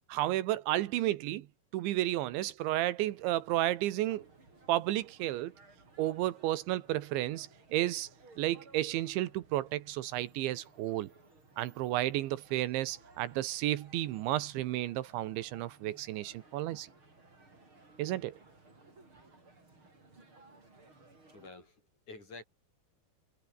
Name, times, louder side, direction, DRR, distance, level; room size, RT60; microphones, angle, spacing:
voice 1, 0.1-1.5 1.7-4.3 4.7-5.5 6.0-8.1 8.4-11.1 11.6-16.9 18.0-18.4, right 15 dB, 80° right, 3.5 m, -32 dB
sound 1, 3.0-21.5, right 3 dB, 25° right, 7.2 m, -60 dB
voice 2, 21.3-22.4, left 3 dB, 40° left, 9.4 m, -49 dB
omnidirectional pair, 5.3 m